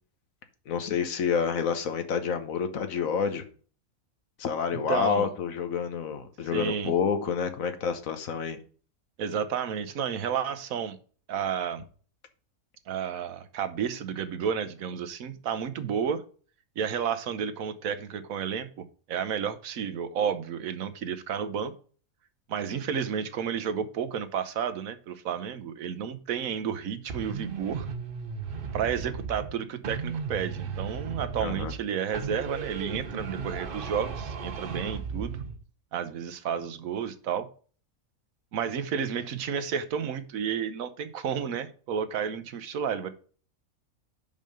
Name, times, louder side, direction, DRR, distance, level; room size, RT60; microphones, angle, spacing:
voice 1, 0.7-3.4 4.4-8.6 31.4-31.7, left 6 dB, 70° left, 9 dB, 1.3 m, -28 dB
voice 2, 4.7-5.3 6.5-6.9 9.2-11.0 11.3-11.8 12.9-16.2 16.8-21.7 22.5-27.9 28.7-35.4 35.9-37.5 38.5-43.1, right 7 dB, 75° right, 11 dB, 1.2 m, -31 dB
sound 1, 27.1-29.6 29.8-31.8 32.1-35.6, right 5 dB, 45° right, 0.8 m, -35 dB
5.5 x 5.3 x 6.5 m, 0.41 s
omnidirectional pair, 1.5 m